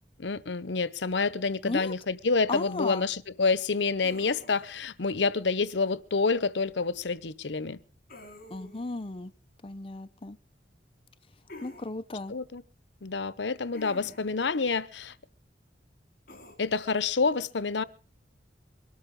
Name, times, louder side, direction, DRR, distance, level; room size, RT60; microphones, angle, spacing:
voice 1, 0.2-7.8 12.3-12.6 13.0-15.1 16.6-17.8, left 4 dB, 80° left, 0.8 m, -28 dB
voice 2, 2.5-3.1 8.5-9.3 9.6-10.4 11.6-12.3, left 2 dB, 30° left, 0.7 m, -35 dB
sound 1, 4.0-4.8 8.1-8.9 11.5-11.9 13.7-14.4 16.3-16.5, left 2 dB, 55° left, 5.3 m, -47 dB
23.5 x 13.0 x 3.7 m
head